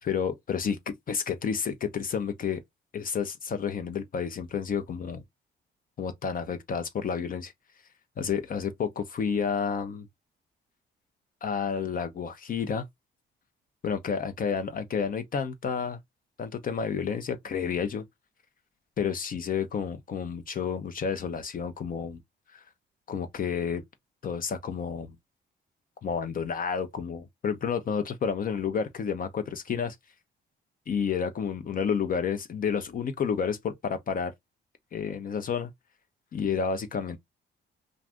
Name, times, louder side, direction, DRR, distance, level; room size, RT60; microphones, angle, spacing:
voice 1, 0.0-2.6 2.9-5.2 6.0-7.5 8.2-10.1 11.4-12.9 13.8-16.0 16.4-18.0 19.0-22.2 22.5-22.6 23.1-23.8 24.2-25.2 26.0-30.0 30.9-34.3 34.9-35.7 36.3-37.2, left 6 dB, 45° left, 0.5 m, -30 dB
2.5 x 2.4 x 3.3 m
cardioid pair, 90°, 20 cm